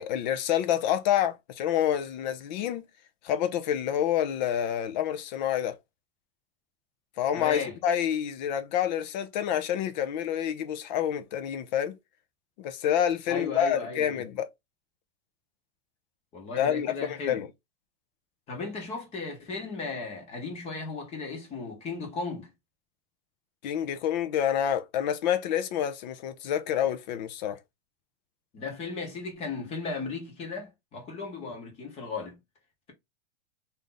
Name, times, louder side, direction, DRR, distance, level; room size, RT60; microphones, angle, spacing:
voice 1, 0.0-2.9 3.2-5.8 7.2-12.0 12.6-14.5 16.6-17.5 23.6-27.6, left 10 dB, 45° left, 0.6 m, -28 dB
voice 2, 7.3-7.8 13.3-14.2 16.3-17.4 18.5-22.5 28.5-32.4, left 4 dB, 20° left, 1.0 m, -36 dB
3.2 x 2.7 x 3.8 m
supercardioid pair, 170°, 30 cm